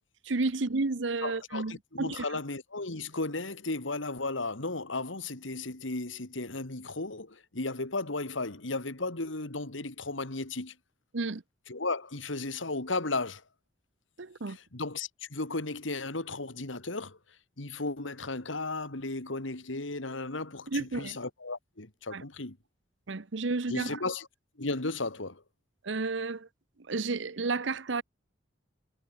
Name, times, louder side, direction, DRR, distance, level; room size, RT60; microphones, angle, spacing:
voice 1, 0.2-2.4 11.1-11.4 14.2-14.6 20.7-21.2 22.1-22.2 23.1-24.0 25.8-26.5 26.9-28.0, right 3 dB, 70° right, 0.9 m, -31 dB
voice 2, 1.2-10.7 11.7-13.4 14.5-17.2 17.6-22.6 23.7-24.3 24.6-25.4, left 3 dB, 90° left, 2.5 m, -35 dB
head